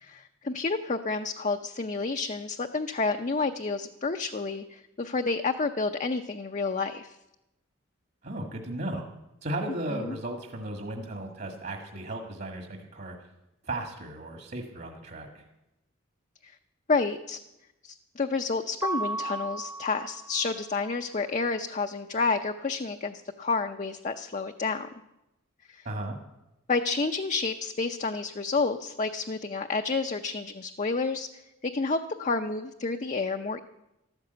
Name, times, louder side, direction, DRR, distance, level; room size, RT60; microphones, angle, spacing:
voice 1, 0.0-7.1 9.9-10.2 16.4-16.5 16.9-17.4 17.8-24.9 25.7-25.9 26.7-31.3 31.6-33.6, left 4 dB, 35° left, 6 dB, 0.6 m, -30 dB
voice 2, 8.2-9.1 9.4-13.2 13.6-15.4 25.9-26.2, right 1 dB, 50° right, 3 dB, 1.7 m, -35 dB
Mallet percussion, 18.8-20.6, right 2 dB, 10° right, 0.7 m, -34 dB
13.5 x 12.5 x 8.0 m, 0.94 s
head